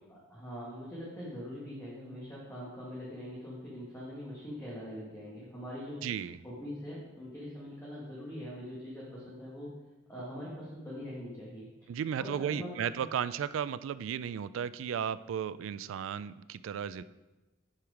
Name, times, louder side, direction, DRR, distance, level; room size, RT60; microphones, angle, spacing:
voice 1, 0.1-6.0 6.4-9.7 10.1-11.7 12.2-13.0, equal, 15° left, -7 dB, 1.7 m, -42 dB
voice 2, 6.0-6.4 11.9-17.0, right 8 dB, 70° right, 15 dB, 0.3 m, -34 dB
10.5 x 4.7 x 4.9 m, 1.1 s
head